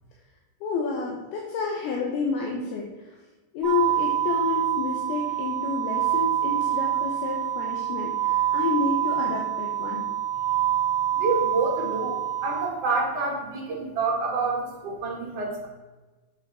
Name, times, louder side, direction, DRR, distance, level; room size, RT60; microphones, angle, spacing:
voice 1, 0.6-3.2 3.5-10.1, left 4 dB, 75° left, -1 dB, 2.8 m, -29 dB
sound 1, 3.6-12.7, right 11 dB, 30° right, 1.9 m, -26 dB
voice 2, 11.1-15.7, right 3 dB, 50° right, -2 dB, 2.3 m, -28 dB
8.0 x 7.0 x 4.2 m, 1.2 s
omnidirectional pair, 4.7 m